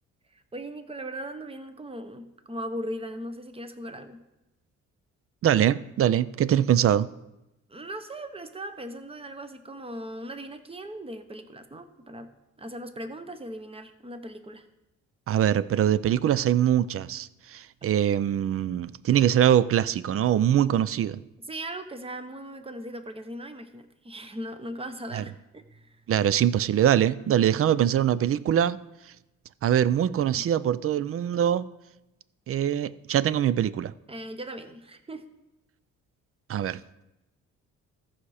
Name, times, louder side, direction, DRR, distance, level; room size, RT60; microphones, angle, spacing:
voice 1, 0.3-4.2 7.7-12.3 12.6-14.7 21.4-26.0 30.3-30.4 34.1-35.3, right 1 dB, 20° right, 9 dB, 1.0 m, -38 dB
voice 2, 5.4-7.1 15.3-21.2 25.1-25.2 26.1-28.8 29.6-31.6 32.5-33.9 36.5-36.8, right 10 dB, 50° right, 18 dB, 0.5 m, -23 dB
14.0 x 5.8 x 4.9 m, 0.94 s
cardioid pair, 90°, 30 cm